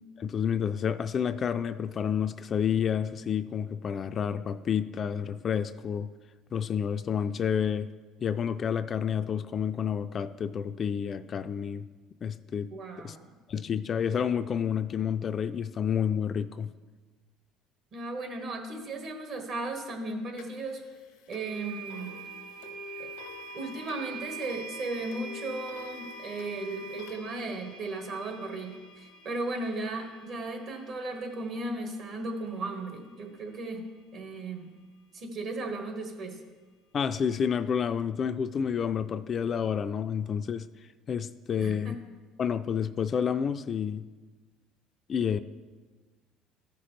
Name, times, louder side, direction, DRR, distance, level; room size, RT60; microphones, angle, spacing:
voice 1, 0.2-6.1 6.5-7.9 8.2-11.8 12.2-12.7 13.0-13.2 13.5-16.7 36.9-40.7 41.1-41.9 42.4-44.0 45.1-45.4, left 7 dB, 40° left, 11 dB, 0.3 m, -29 dB
voice 2, 12.7-13.4 17.9-20.8 21.3-22.2 23.0-23.1 23.5-33.9 34.1-34.8 35.1-36.4 41.6-42.0, right 2 dB, 55° right, 4 dB, 1.5 m, -36 dB
sound 1, 20.4-20.5 21.3-32.3, right 2 dB, 90° left, 0.8 m, -44 dB
14.0 x 5.8 x 3.2 m, 1.4 s
supercardioid pair, 105°, 0 cm